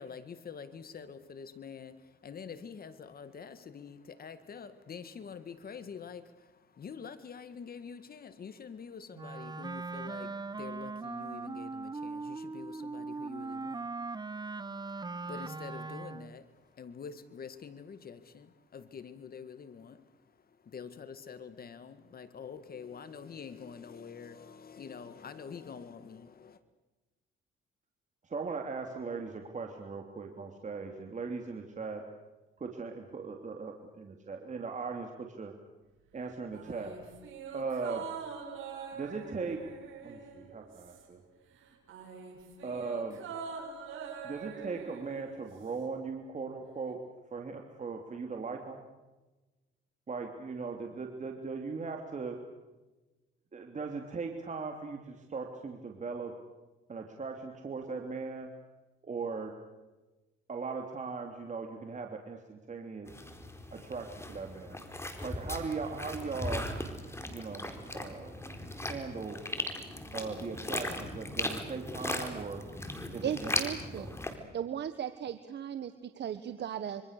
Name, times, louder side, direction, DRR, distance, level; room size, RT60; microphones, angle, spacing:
voice 1, 0.0-26.6, left 6 dB, 50° left, 12 dB, 1.8 m, -46 dB
Wind instrument woodwind instrument, 9.1-16.4, right 3 dB, 20° right, 0.9 m, -40 dB
voice 2, 28.2-32.0 32.6-35.5 36.1-36.9 37.5-38.1 38.9-41.2 42.6-43.2 44.2-47.0 47.3-48.8 50.1-52.4 53.5-56.3 56.9-58.5 59.0-59.5 60.5-63.1 63.7-64.8 65.2-66.7 67.3-68.3 68.9-69.4 70.1-72.6 73.1-73.5 73.8-74.1, right 4 dB, 40° right, 3 dB, 3.2 m, -39 dB
sound 1, 36.5-41.3 41.6-45.9 46.2-46.3, right 6 dB, 80° right, 7.3 m, -44 dB
sound 2, 63.1-74.4, left 1 dB, 15° left, 4.2 m, -38 dB
voice 3, 73.2-74.1 74.5-77.0, right 9 dB, 60° right, 11 dB, 1.4 m, -36 dB
26.5 x 25.0 x 6.8 m, 1.1 s
cardioid pair, 90°, 20 cm